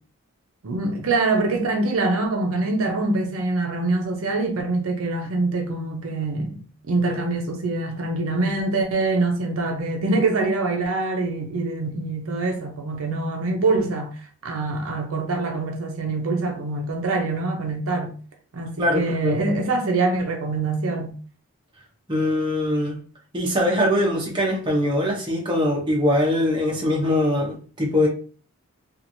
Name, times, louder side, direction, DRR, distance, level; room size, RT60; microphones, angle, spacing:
voice 1, 0.6-18.2 18.5-21.2, right 3 dB, 70° right, 0.6 m, -24 dB
voice 2, 18.8-19.4 22.1-22.9 23.3-28.1, left 1 dB, 20° right, 0.7 m, -22 dB
3.0 x 2.4 x 2.6 m
head